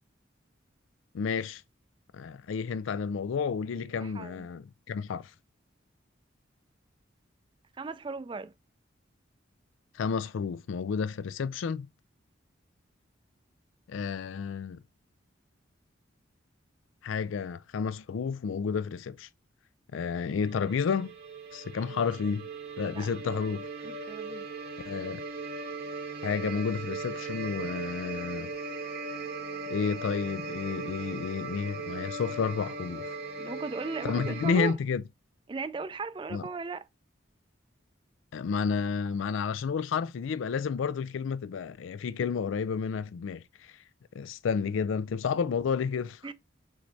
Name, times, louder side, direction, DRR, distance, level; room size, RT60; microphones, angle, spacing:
voice 1, 1.1-1.6 2.1-5.3 9.9-11.9 13.9-14.8 17.0-19.3 19.9-21.1 21.5-22.5 22.8-23.7 24.9-25.2 26.2-28.5 29.7-33.1 34.0-35.0 36.3-36.4 38.3-43.7 44.1-46.3, left 6 dB, 85° left, 0.4 m, -31 dB
voice 2, 4.0-4.5 7.8-8.5 22.8-23.1 23.8-24.5 33.4-34.7 35.5-36.9 46.2-46.3, right 4 dB, 25° right, 0.3 m, -37 dB
sound 1, 20.4-34.7, right 3 dB, 55° right, 0.9 m, -38 dB
6.0 x 3.1 x 2.6 m
head